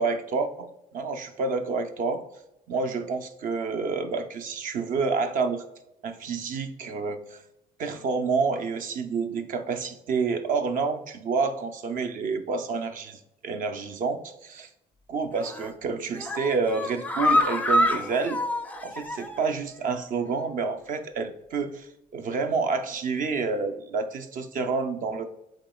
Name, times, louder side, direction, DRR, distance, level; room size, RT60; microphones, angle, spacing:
voice 1, 0.0-2.2 2.7-5.6 6.0-7.4 7.8-14.2 14.6-14.7 15.1-18.4 18.8-21.7 22.1-25.2, right 4 dB, 50° right, 8 dB, 0.5 m, -28 dB
sound 1, 15.4-15.7 16.1-19.5 19.8-19.9 20.3-20.4, left 1 dB, 10° left, 0.4 m, -26 dB
7.3 x 2.9 x 2.3 m, 0.88 s
cardioid pair, 110°, 17 cm